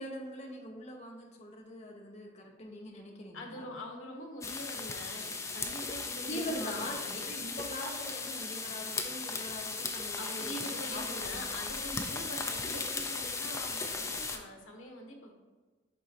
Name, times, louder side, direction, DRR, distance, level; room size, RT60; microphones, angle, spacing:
voice 1, 0.0-3.7 6.2-11.4 11.9-12.1, left 1 dB, 35° left, 1 dB, 0.9 m, -42 dB
voice 2, 2.9-6.9 10.2-15.3, left 1 dB, 90° left, 2 dB, 1.2 m, -44 dB
sound 1, 4.4-14.4, left 4 dB, 15° left, 0.4 m, -37 dB
10.5 x 3.7 x 2.9 m, 1.3 s
head